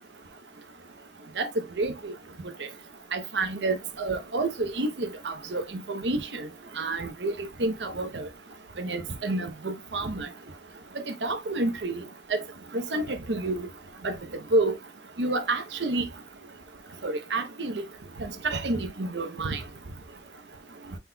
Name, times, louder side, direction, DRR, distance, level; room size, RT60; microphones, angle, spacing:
voice 1, 1.8-2.1 3.1-6.4 6.8-7.3 7.6-8.3 8.8-10.3 11.2-12.0 12.3-12.4 12.7-13.7 14.0-14.1 14.5-14.7 15.2-16.0 17.0-17.8 18.2-19.6, right 2 dB, 85° right, 0.8 m, -29 dB
5.7 x 4.2 x 2.2 m
head